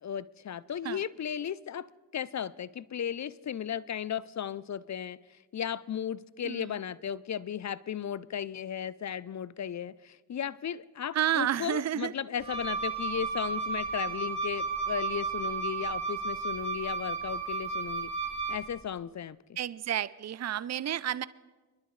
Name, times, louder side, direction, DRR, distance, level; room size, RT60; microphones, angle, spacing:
voice 1, 0.0-5.2 5.5-18.1 18.5-19.4, left 9 dB, 40° left, 20 dB, 0.5 m, -35 dB
voice 2, 11.1-12.1 19.6-21.3, right 11 dB, 35° right, 17 dB, 0.5 m, -30 dB
Wind instrument woodwind instrument, 12.4-18.7, right 4 dB, 10° right, 2.6 m, -33 dB
25.0 x 11.5 x 3.2 m, 1.3 s
supercardioid pair, 45°, 46 cm